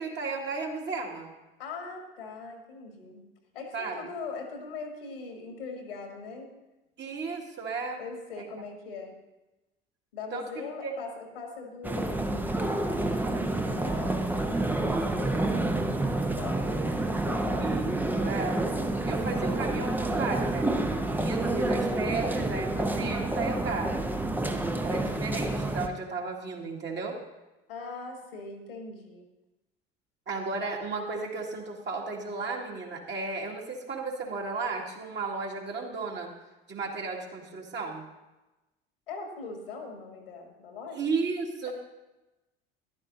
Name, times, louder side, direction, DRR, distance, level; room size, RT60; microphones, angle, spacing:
voice 1, 0.0-1.3 3.7-4.0 7.0-8.0 10.3-10.9 17.6-18.6 19.0-20.7 21.1-23.9 24.8-27.2 30.3-36.3 36.7-38.0 40.9-41.7, right 4 dB, 40° right, -1 dB, 2.1 m, -34 dB
voice 2, 1.6-3.3 3.5-6.5 8.0-9.1 10.1-12.3 12.8-16.9 17.2-17.8 27.7-29.2 39.1-41.0 41.7-41.8, left 4 dB, 75° left, 3 dB, 2.0 m, -41 dB
sound 1, 11.8-25.9, right 2 dB, 5° right, 0.7 m, -28 dB
14.0 x 11.5 x 2.7 m, 1.0 s
figure-of-eight pair, 60°, 29 cm